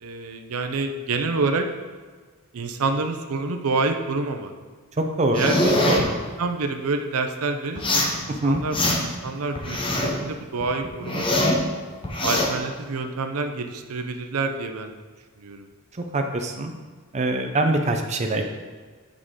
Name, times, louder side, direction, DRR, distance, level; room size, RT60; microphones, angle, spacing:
voice 1, 0.0-1.7 2.5-4.5 5.3-6.1 6.4-11.6 12.2-14.9 15.4-15.7, right 3 dB, 75° right, 6 dB, 0.6 m, -28 dB
voice 2, 5.0-5.4 5.9-6.2 8.3-8.6 16.1-16.7 17.1-18.4, right 2 dB, 30° right, 3 dB, 0.5 m, -23 dB
sound 1, 5.3-6.0 7.8-8.2 8.5-9.2 9.5-10.2 10.6-11.6 12.0-12.5, left 1 dB, 25° left, 0.9 m, -23 dB
8.6 x 4.8 x 3.7 m, 1.5 s
head